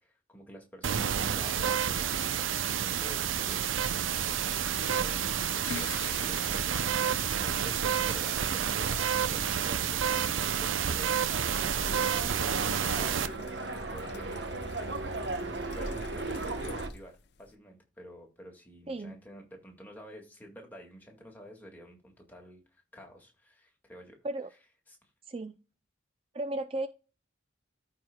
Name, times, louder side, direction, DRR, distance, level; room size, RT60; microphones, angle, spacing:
voice 1, 0.0-6.9 7.4-11.4 11.7-13.2 13.9-14.5 15.7-24.2 24.9-25.1, equal, 10° left, 0 dB, 1.9 m, -50 dB
sound 1, 0.8-13.3, right 8 dB, 90° right, 0.6 m, -29 dB
voice 2, 1.3-1.7 18.9-19.2 24.2-24.5 25.2-25.6 26.3-26.9, right 2 dB, 30° right, 10 dB, 0.4 m, -35 dB
sound 2, 5.2-17.6, left 5 dB, 55° left, 0.6 m, -48 dB
sound 3, 11.3-16.9, right 2 dB, 65° right, 1.0 m, -36 dB
14.0 x 4.7 x 2.2 m, 0.34 s
head